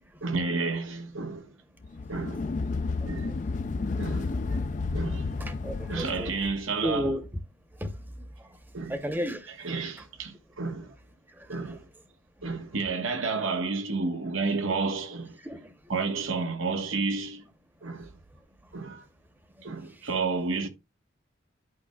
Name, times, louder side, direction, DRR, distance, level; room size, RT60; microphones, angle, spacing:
voice 1, 0.2-1.5 2.1-2.5 3.0-3.3 4.0-4.3 4.9-5.3 5.9-7.1 8.7-9.0 9.6-10.9 11.5-11.8 12.4-15.4 15.9-17.4 17.8-18.1 18.7-19.1 19.6-20.7, right 4 dB, 90° right, 1.3 m, -31 dB
sound 1, 1.8-6.7, left 3 dB, 40° left, 0.3 m, -31 dB
voice 2, 2.8-3.4 5.1-6.4 6.8-7.3 7.7-8.6 8.9-9.5 10.0-10.1 11.3-11.8 15.4-15.9 18.6-18.7 19.5-20.1, equal, 10° right, 0.9 m, -35 dB
11.0 x 5.6 x 2.3 m
head